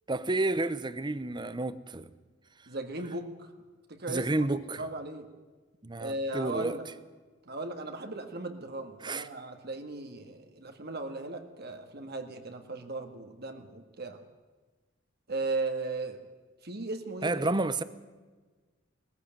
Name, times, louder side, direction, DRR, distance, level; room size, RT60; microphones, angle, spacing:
voice 1, 0.1-2.1 4.1-4.8 5.8-6.8 9.0-9.3 17.2-17.8, right 2 dB, 25° right, 0.8 m, -30 dB
voice 2, 2.7-3.5 3.9-4.5 4.8-5.3 6.0-6.9 7.5-14.2 15.3-16.2 16.6-17.4, right 2 dB, 55° right, 1.8 m, -37 dB
20.0 x 15.0 x 9.1 m
head